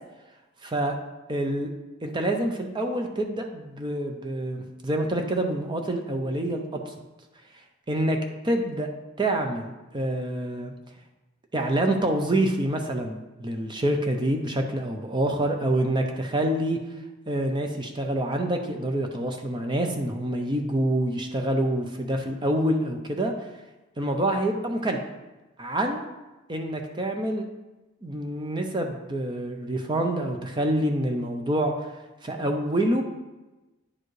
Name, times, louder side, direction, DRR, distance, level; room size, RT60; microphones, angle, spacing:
voice 1, 0.6-1.0 1.3-1.7 2.0-6.9 7.9-8.2 8.4-8.9 9.2-10.7 11.5-16.8 17.3-23.3 24.0-25.0 25.6-26.0 26.5-27.4 28.0-31.9 32.2-33.0, right 1 dB, 25° right, 3 dB, 0.6 m, -27 dB
9.9 x 4.6 x 3.2 m, 1.1 s
head